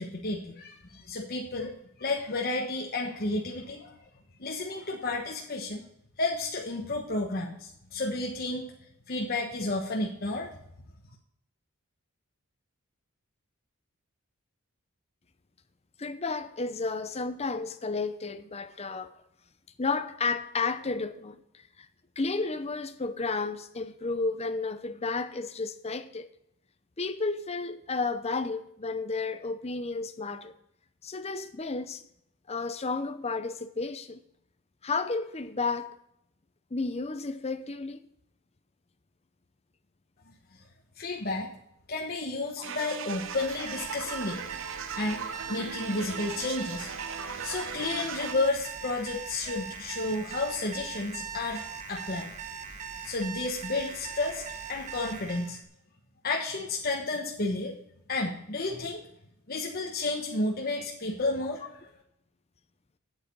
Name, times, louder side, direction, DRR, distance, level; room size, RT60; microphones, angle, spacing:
voice 1, 0.0-3.9 4.4-5.8 6.2-8.7 9.1-10.5 41.0-41.5 41.9-44.4 45.0-45.2 45.5-46.9 47.4-52.3 53.0-54.4 54.7-55.6 56.2-57.8 58.1-59.0 59.5-61.8, left 2 dB, 45° left, 1.1 m, -31 dB
voice 2, 16.0-19.1 19.8-21.4 21.8-21.9 22.2-26.3 27.0-30.6 31.0-32.0 32.5-34.2 34.8-35.9 36.7-38.0 42.7-42.8, left 3 dB, 30° left, 0.7 m, -32 dB
sound 1, 42.6-48.3, right 6 dB, 60° right, 0.7 m, -38 dB
Alarm, 43.1-55.6, right 6 dB, 35° right, 1.1 m, -41 dB
8.5 x 8.2 x 5.4 m
head